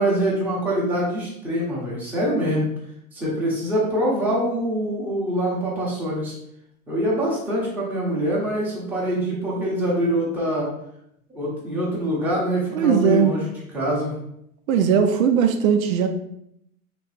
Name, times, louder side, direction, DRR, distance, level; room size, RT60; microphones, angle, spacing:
voice 1, 0.0-2.7 3.1-6.3 6.9-10.7 11.3-14.2, equal, 5° right, -7 dB, 0.8 m, -24 dB
voice 2, 12.8-13.3 14.7-16.1, right 7 dB, 70° right, 6 dB, 0.5 m, -19 dB
3.2 x 2.9 x 3.2 m, 0.75 s
hypercardioid pair, 145°, 44 cm